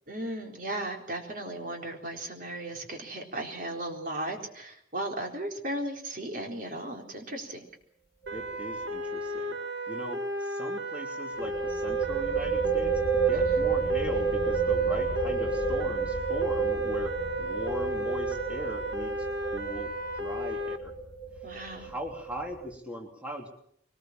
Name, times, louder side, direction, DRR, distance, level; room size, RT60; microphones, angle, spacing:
voice 1, 0.1-7.6 13.3-13.6 21.4-21.9, right 1 dB, 45° right, 2 dB, 4.2 m, -36 dB
sound 1, 8.2-8.5 8.8-8.9 11.4-22.7, right 5 dB, 20° left, 6.1 m, -30 dB
voice 2, 8.3-9.6 9.9-20.9 21.4-21.5 21.8-23.5, equal, 5° right, 0 dB, 3.1 m, -39 dB
sound 2, 8.3-20.8, equal, 70° right, 1.6 m, -34 dB
23.5 x 20.0 x 7.4 m, 0.67 s
head